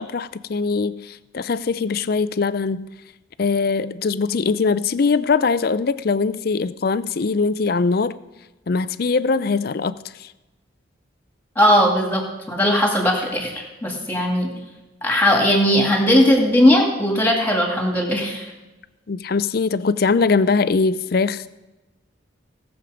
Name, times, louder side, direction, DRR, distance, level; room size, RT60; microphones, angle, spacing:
voice 1, 0.0-2.9 3.4-8.1 8.7-9.9 10.2-10.3 19.1-21.5, left 4 dB, 50° left, 15 dB, 0.4 m, -21 dB
voice 2, 11.6-12.2 12.5-14.5 15.0-18.5, equal, 10° left, 0 dB, 2.3 m, -18 dB
18.0 x 7.2 x 5.1 m, 1.1 s
head